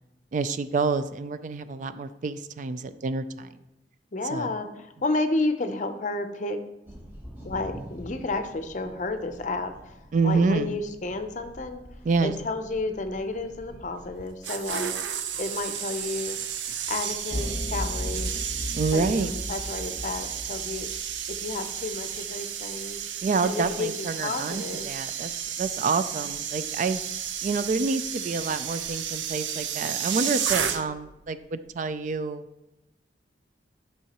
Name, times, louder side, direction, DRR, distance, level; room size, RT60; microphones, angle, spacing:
voice 1, 0.3-3.5 4.3-4.5 10.1-10.7 12.1-12.3 18.7-19.3 23.2-25.3 25.6-27.0 27.4-32.4, right 4 dB, 45° right, 12 dB, 0.3 m, -27 dB
voice 2, 4.1-6.6 7.4-11.8 12.2-14.9 15.4-16.4 16.9-18.3 18.9-20.9 21.3-23.0 23.4-23.9 24.2-24.9, left 2 dB, 45° left, 8 dB, 0.6 m, -31 dB
sound 1, 6.9-14.3, equal, 10° right, 1.1 m, -46 dB
sound 2, 14.2-31.1 31.4-31.7, right 8 dB, 90° right, 0.6 m, -32 dB
sound 3, 17.3-21.6, left 1 dB, 5° left, 0.8 m, -35 dB
11.0 x 5.6 x 2.9 m, 0.95 s
head